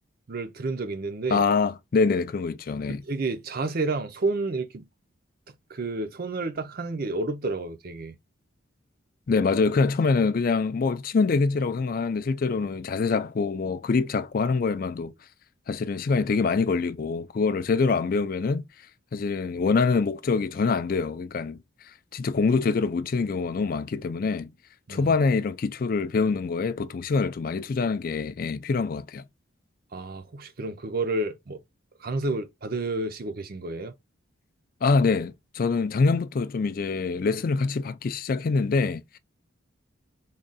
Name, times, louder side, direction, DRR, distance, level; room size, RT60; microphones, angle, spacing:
voice 1, 0.3-1.4 2.9-4.9 5.7-8.2 24.9-25.1 29.9-31.6 32.0-33.9, right 2 dB, 45° right, 0.5 m, -30 dB
voice 2, 1.3-3.0 9.3-15.1 15.7-18.6 19.1-21.6 22.1-24.5 24.9-29.2 34.8-39.2, left 4 dB, 45° left, 0.3 m, -25 dB
3.7 x 2.2 x 3.9 m
head